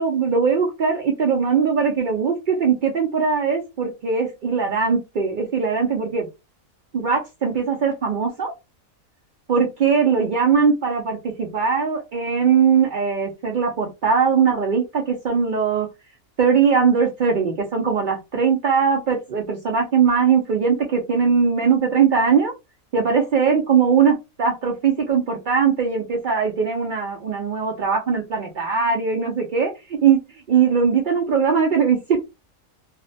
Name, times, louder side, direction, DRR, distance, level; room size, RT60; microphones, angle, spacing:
voice 1, 0.0-6.3 6.9-8.5 9.5-15.9 16.4-22.5 22.9-29.7 30.0-30.2 30.5-32.0, right 6 dB, 85° right, 1 dB, 0.4 m, -20 dB
2.4 x 2.0 x 2.6 m, 0.24 s
omnidirectional pair, 1.4 m